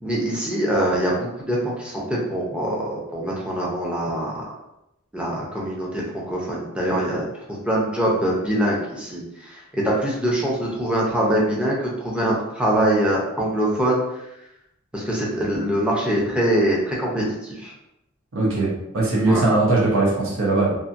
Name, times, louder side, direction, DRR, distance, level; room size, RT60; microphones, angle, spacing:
voice 1, 0.0-4.4 5.1-7.2 7.6-14.3 14.9-17.7 19.2-19.4, right 1 dB, 5° right, -5 dB, 0.6 m, -23 dB
voice 2, 18.3-20.7, right 2 dB, 65° right, -4 dB, 0.8 m, -20 dB
2.7 x 2.6 x 2.5 m, 0.87 s
head